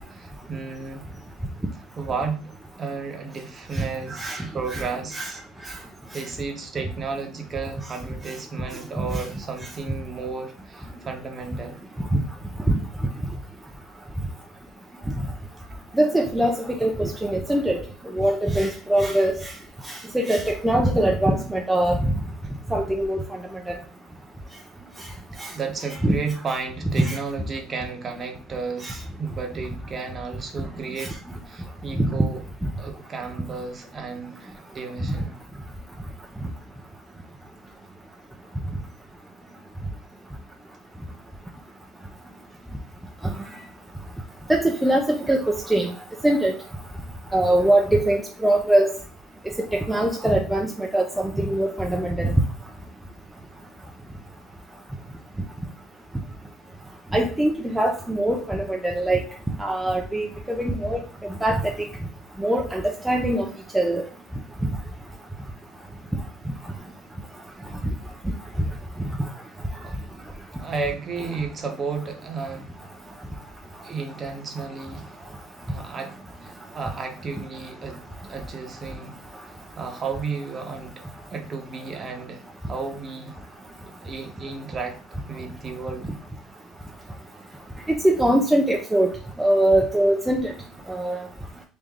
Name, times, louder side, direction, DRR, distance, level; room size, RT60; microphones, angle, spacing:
voice 1, 0.1-1.1 2.0-2.5 2.8-5.4 6.1-11.8 25.3-31.2 31.5-32.4 32.8-35.3 69.8-70.0 70.6-72.7 73.8-75.3 75.7-79.2 79.8-81.0 81.3-83.3 84.0-85.0 85.3-86.1, right 4 dB, 30° right, 4 dB, 0.8 m, -33 dB
voice 2, 3.7-4.4 4.7-4.9 5.1-5.3 5.6-5.7 9.1-9.2 12.1-12.2 12.7-12.8 15.9-17.8 18.1-19.5 19.9-22.0 22.7-23.2 23.7-23.8 25.4-25.5 26.0-26.1 27.0-27.2 28.8-28.9 31.0-31.1 32.0-32.1 44.5-45.9 46.2-46.5 47.3-48.9 49.7-52.3 57.1-61.0 61.4-61.7 62.4-63.5 63.7-64.0 69.0-69.1 88.0-89.1 89.4-90.5 90.9-91.2, right 1 dB, 5° right, 0 dB, 0.5 m, -22 dB
3.5 x 2.5 x 3.3 m, 0.40 s
cardioid pair, 120°, 0 cm